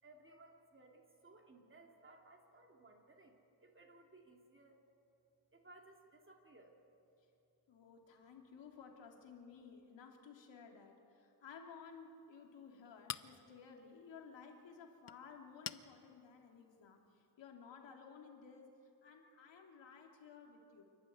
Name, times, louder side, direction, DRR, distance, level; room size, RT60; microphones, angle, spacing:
voice 1, 0.0-4.8 5.5-6.8, right 2 dB, 30° right, 2 dB, 2.6 m, -61 dB
voice 2, 7.7-17.0 17.4-18.7 19.0-20.8, left 6 dB, 90° left, 2 dB, 3.0 m, -56 dB
Chink clink, 11.8-17.3, left 8 dB, 40° left, 0.6 m, -53 dB
28.5 x 12.0 x 9.5 m, 2.7 s
wide cardioid pair, 125°, 43 cm